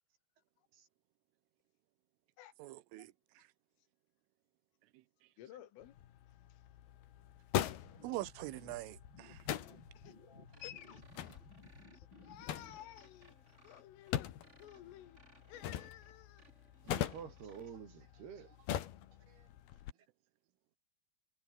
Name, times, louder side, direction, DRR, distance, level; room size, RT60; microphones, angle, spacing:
voice 1, 2.6-3.5 8.0-9.4, right 18 dB, 90° right, 3.6 m, -44 dB
voice 2, 5.4-5.9 6.5-6.6 9.9-10.1 10.6-11.4 11.9-14.3 14.6-15.2 15.5-16.5, left 12 dB, 90° left, 4.6 m, -54 dB
sound 1, 5.8-19.9, left 11 dB, 60° left, 3.2 m, -43 dB
sound 2, 7.8-12.8, left 3 dB, 25° left, 5.9 m, -58 dB
sound 3, 10.5-17.7, right 2 dB, 15° right, 5.0 m, -65 dB
voice 3, 16.8-18.6 19.3-19.5, right 7 dB, 55° right, 5.6 m, -50 dB
omnidirectional pair, 5.6 m